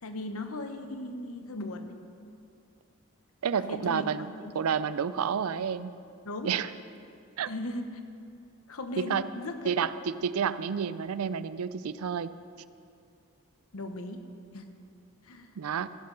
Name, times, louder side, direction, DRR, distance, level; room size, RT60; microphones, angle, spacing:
voice 1, 0.0-2.0 3.5-4.1 4.4-4.5 6.2-6.5 7.5-8.0 8.7-10.1 13.7-14.3 14.5-14.7 15.2-15.5, left 2 dB, 75° left, 7 dB, 1.0 m, -38 dB
voice 2, 3.4-4.3 4.5-5.9 6.4-6.7 7.4-7.5 9.0-9.2 9.7-12.3 15.6-15.9, right 7 dB, 80° right, 15 dB, 0.4 m, -30 dB
15.5 x 11.0 x 3.9 m, 2.4 s
head